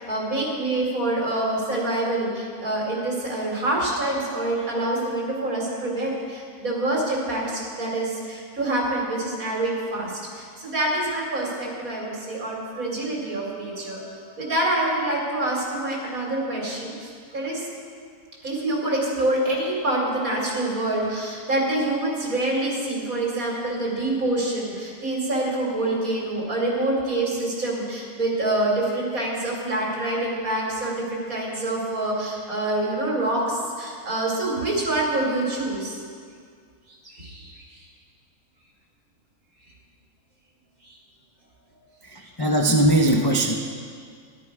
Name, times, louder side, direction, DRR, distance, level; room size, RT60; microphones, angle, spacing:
voice 1, 0.0-16.9 17.3-17.6 18.4-36.0 36.9-37.6 40.9-41.0 42.2-42.3, right 1 dB, 60° right, -3 dB, 3.3 m, -26 dB
voice 2, 42.1-43.6, right 1 dB, 40° left, 0 dB, 0.3 m, -20 dB
13.0 x 11.5 x 4.8 m, 2.1 s
omnidirectional pair, 1.6 m